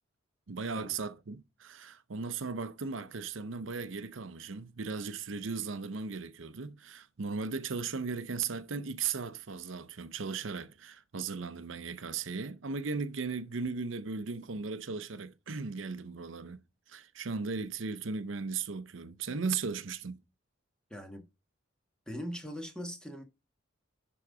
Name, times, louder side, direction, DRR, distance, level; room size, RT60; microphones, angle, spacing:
voice 1, 0.5-16.6 16.9-20.2, right 5 dB, 75° right, 0.7 m, -37 dB
voice 2, 20.9-21.3 22.1-23.2, equal, 5° left, 1.5 m, -40 dB
11.0 x 3.9 x 4.9 m
head